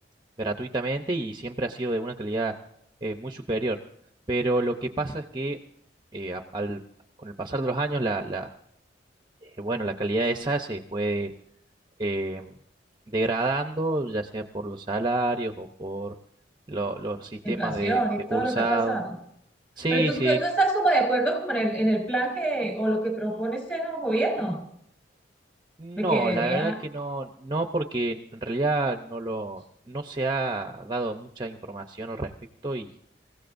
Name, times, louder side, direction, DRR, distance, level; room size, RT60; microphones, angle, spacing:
voice 1, 0.4-2.5 3.0-3.8 4.3-5.6 6.1-6.8 7.2-8.5 9.4-11.3 12.0-12.5 13.1-16.1 16.7-18.0 18.3-19.0 19.8-20.4 25.8-32.3 32.6-32.9, right 2 dB, 25° right, 4 dB, 0.8 m, -29 dB
voice 2, 17.4-19.1 19.9-24.6 26.0-26.8, right 2 dB, 10° left, 2 dB, 5.1 m, -26 dB
27.0 x 16.0 x 2.6 m, 0.71 s
head